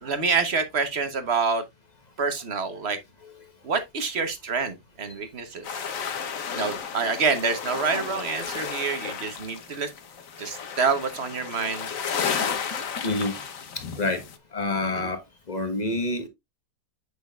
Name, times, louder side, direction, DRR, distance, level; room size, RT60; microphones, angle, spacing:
voice 1, 0.0-1.6 2.2-3.0 3.6-5.7 6.5-9.9 10.4-11.9 14.9-15.1, right 5 dB, 40° right, 1.2 m, -27 dB
sound 1, 5.6-14.4, left 7 dB, 55° left, 1.3 m, -33 dB
voice 2, 14.5-15.2 15.5-16.3, left 2 dB, 25° left, 1.2 m, -27 dB
8.4 x 6.1 x 2.4 m
omnidirectional pair, 1.9 m